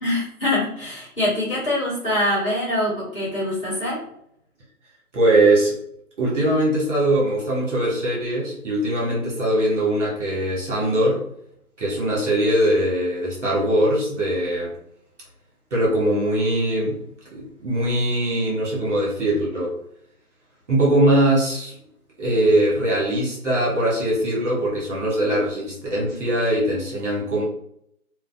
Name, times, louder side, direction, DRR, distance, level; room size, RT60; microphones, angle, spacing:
voice 1, 0.0-4.0, left 1 dB, 20° left, -10 dB, 1.3 m, -24 dB
voice 2, 5.1-5.7 6.2-11.2 11.8-14.7 15.7-17.0 17.3-19.8 20.7-21.8 22.2-27.4, right 1 dB, 50° right, -4 dB, 1.2 m, -21 dB
3.1 x 2.1 x 2.6 m, 0.73 s
figure-of-eight pair, 155°, 46 cm